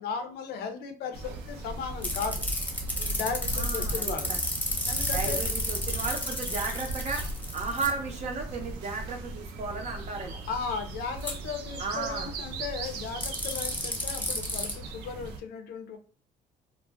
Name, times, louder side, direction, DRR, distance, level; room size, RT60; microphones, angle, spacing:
voice 1, 0.0-2.4 3.0-4.3 4.8-5.4 10.5-16.0, left 5 dB, 70° left, 7 dB, 0.6 m, -36 dB
sound 1, 1.1-15.4, right 2 dB, 85° right, 0.6 m, -38 dB
sound 2, 2.0-7.9 11.2-11.3 13.2-14.7, left 1 dB, 10° left, 0.8 m, -32 dB
voice 2, 3.5-4.4 5.1-7.2 7.5-10.4 11.8-12.3, right 4 dB, 40° right, 2 dB, 0.6 m, -34 dB
2.4 x 2.1 x 3.3 m, 0.40 s
cardioid pair, 110°, 17 cm